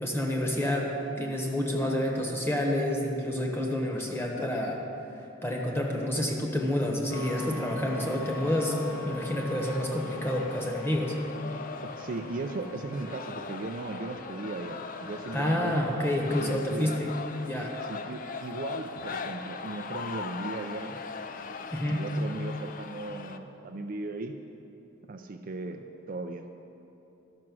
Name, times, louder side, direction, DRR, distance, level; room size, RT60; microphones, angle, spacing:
voice 1, 0.0-4.8 5.4-8.8 9.0-11.2 15.3-17.1 17.5-17.7 21.7-22.0, left 1 dB, 10° left, 0 dB, 1.1 m, -29 dB
sound 1, 7.1-19.6, left 1 dB, 75° left, 1.7 m, -46 dB
sound 2, 7.1-23.4, left 5 dB, 40° left, 0.4 m, -41 dB
voice 2, 11.8-15.8 16.4-16.9 17.9-21.0 21.9-24.3 25.1-26.5, right 3 dB, 45° right, 5 dB, 0.4 m, -37 dB
12.5 x 6.1 x 6.1 m, 2.9 s
head